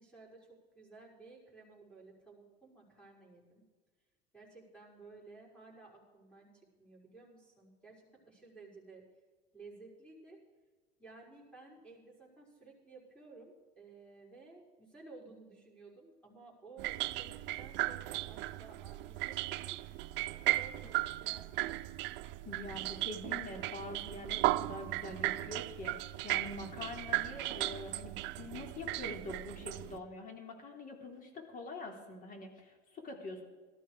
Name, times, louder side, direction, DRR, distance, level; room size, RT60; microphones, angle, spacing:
voice 1, 0.0-3.6 4.3-9.0 9.5-10.4 11.0-19.8 20.3-21.9, right 3 dB, 5° left, -3 dB, 5.9 m, -55 dB
sound 1, 16.8-30.0, right 18 dB, 60° right, 0.6 m, -36 dB
voice 2, 22.4-33.4, left 2 dB, 40° left, 3 dB, 3.7 m, -45 dB
18.0 x 13.5 x 5.0 m, 1.4 s
supercardioid pair, 105°, 21 cm